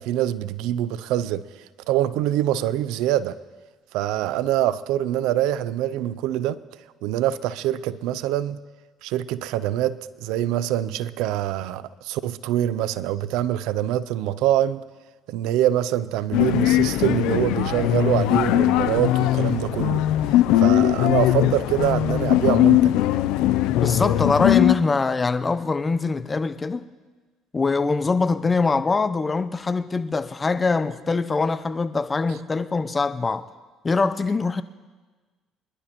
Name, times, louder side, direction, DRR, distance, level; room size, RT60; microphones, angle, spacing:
voice 1, 0.0-3.4 3.9-6.6 7.0-8.6 9.0-14.8 15.3-20.1 20.6-23.0, right 12 dB, 80° right, 0.5 m, -24 dB
sound 1, 16.3-24.7, left 14 dB, 80° left, 0.5 m, -20 dB
voice 2, 23.8-26.9 27.5-33.5 33.8-34.6, left 4 dB, 25° left, 0.7 m, -23 dB
25.0 x 11.5 x 3.1 m
supercardioid pair, 75°, 0 cm